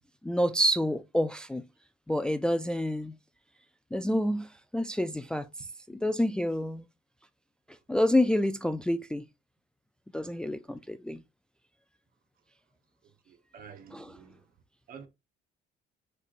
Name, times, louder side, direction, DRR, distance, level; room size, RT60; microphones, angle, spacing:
voice 1, 0.2-1.6 2.1-3.1 3.9-4.5 4.7-5.5 5.9-6.8 7.9-9.2 10.1-11.2 13.9-14.2, equal, 5° left, 0.3 m, -28 dB
voice 2, 13.3-14.4 14.9-15.1, right 7 dB, 60° right, 1.0 m, -49 dB
6.4 x 3.3 x 2.5 m
cardioid pair, 110°, 17 cm